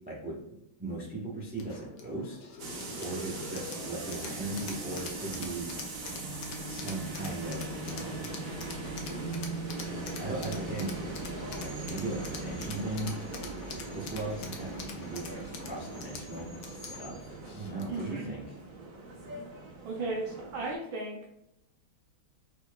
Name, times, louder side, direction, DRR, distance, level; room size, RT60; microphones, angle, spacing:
voice 1, 0.1-2.5 3.0-5.7 6.6-8.3 9.7-11.0 11.5-13.1 13.9-16.5 16.7-18.4, right 2 dB, 10° right, -5 dB, 0.6 m, -38 dB
sound 1, 1.6-18.1, left 4 dB, 65° left, 1.3 m, -44 dB
sound 2, 2.6-20.7, right 3 dB, 55° right, 1.0 m, -40 dB
voice 2, 17.9-18.3 19.8-21.2, right 2 dB, 75° right, -1 dB, 1.4 m, -35 dB
5.7 x 4.0 x 2.3 m, 0.84 s
omnidirectional pair, 2.2 m